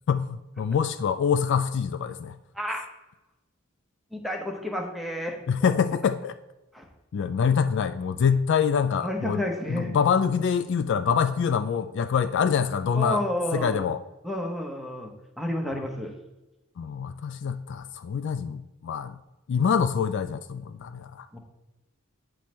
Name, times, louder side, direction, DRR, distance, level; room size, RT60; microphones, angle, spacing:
voice 1, 0.1-2.4 5.5-6.4 7.1-13.2 13.5-14.0 16.8-19.2 19.5-21.3, left 6 dB, 55° left, 12 dB, 0.3 m, -25 dB
voice 2, 2.5-2.9 4.1-5.7 6.7-6.8 9.0-9.9 12.9-13.8 14.2-15.1 15.4-16.1 21.3-21.4, left 1 dB, ahead, 1 dB, 0.9 m, -30 dB
8.3 x 3.2 x 6.0 m, 1.0 s
head